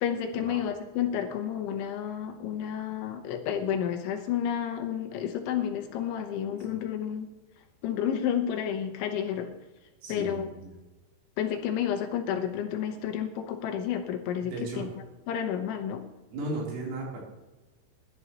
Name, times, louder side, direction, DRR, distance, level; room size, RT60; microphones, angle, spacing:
voice 1, 0.0-7.3 7.8-9.5 10.1-10.5 11.4-14.9 15.3-16.0, left 9 dB, 75° left, 5 dB, 3.4 m, -30 dB
voice 2, 10.0-10.7 14.4-14.9 16.3-17.2, right 2 dB, 75° right, -3 dB, 6.0 m, -36 dB
21.5 x 11.5 x 3.0 m, 1.1 s
omnidirectional pair, 5.7 m